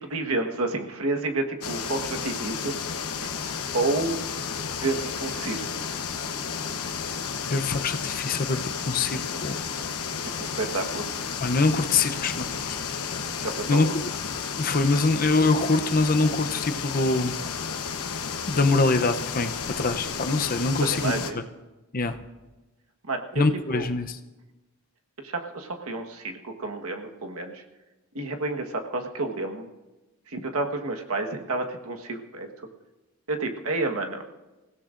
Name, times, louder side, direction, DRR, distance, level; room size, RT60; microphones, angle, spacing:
voice 1, 0.0-2.7 3.7-4.2 4.8-5.6 10.4-11.1 13.4-13.9 20.8-21.4 23.1-23.4 23.7-23.9 25.2-27.6 28.1-29.7 30.3-32.5 33.3-34.2, right 2 dB, 75° right, 4 dB, 1.4 m, -30 dB
sound 1, 1.6-21.3, left 6 dB, 85° left, 1.0 m, -32 dB
voice 2, 7.4-9.6 11.4-12.9 13.7-14.1 14.6-17.3 18.5-21.4 21.9-22.2 23.4-24.2, left 3 dB, 40° left, 8 dB, 0.6 m, -24 dB
27.0 x 16.5 x 2.5 m, 1.1 s
head